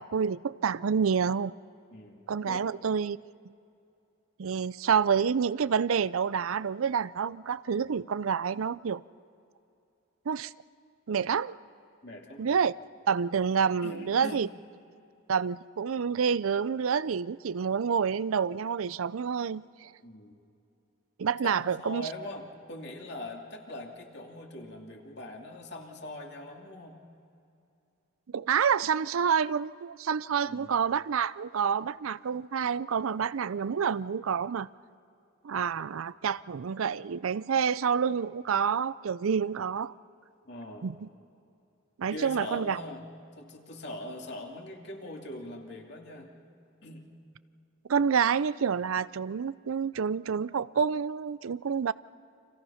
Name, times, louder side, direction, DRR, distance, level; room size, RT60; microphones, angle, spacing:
voice 1, 0.0-1.5 2.3-3.2 4.4-9.0 10.3-10.5 11.1-11.6 12.4-12.7 13.1-14.5 15.3-19.9 21.2-22.1 28.3-34.7 35.4-39.9 40.8-41.1 42.0-42.8 47.9-51.9, right 6 dB, 85° right, 0.5 m, -28 dB
voice 2, 1.9-2.6 12.0-12.6 13.8-14.4 20.0-20.4 21.4-27.0 30.4-30.7 40.4-40.9 42.1-43.0 43.4-46.3 46.8-47.0, left 1 dB, 55° left, 2.8 m, -42 dB
30.0 x 26.0 x 5.7 m
head